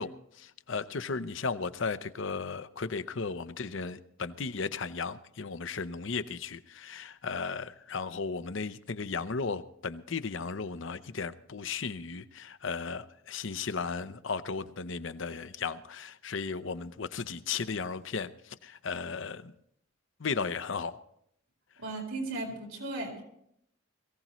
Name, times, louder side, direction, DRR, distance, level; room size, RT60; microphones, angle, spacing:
voice 1, 0.0-19.5 20.2-21.0, left 5 dB, 65° left, 13 dB, 0.7 m, -35 dB
voice 2, 21.8-23.2, right 2 dB, 85° right, 1 dB, 4.3 m, -36 dB
22.0 x 16.0 x 3.1 m, 0.72 s
head